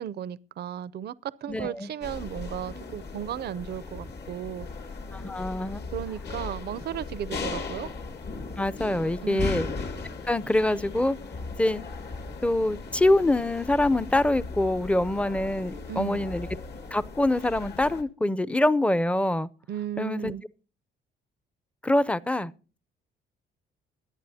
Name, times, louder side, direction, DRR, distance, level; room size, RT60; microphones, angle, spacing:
voice 1, 0.0-4.7 5.9-7.9 9.2-9.6 15.9-16.2 19.7-20.4, right 10 dB, 55° right, 0.5 m, -35 dB
voice 2, 1.5-1.9 5.1-5.8 8.6-9.7 10.3-11.2 11.6-11.8 12.4-16.5 16.9-19.5 20.0-20.3 21.8-22.5, left 1 dB, 5° left, 0.5 m, -25 dB
sound 1, 2.0-18.0, left 4 dB, 55° left, 1.7 m, -37 dB
22.0 x 8.5 x 2.7 m
cardioid pair, 90°, 20 cm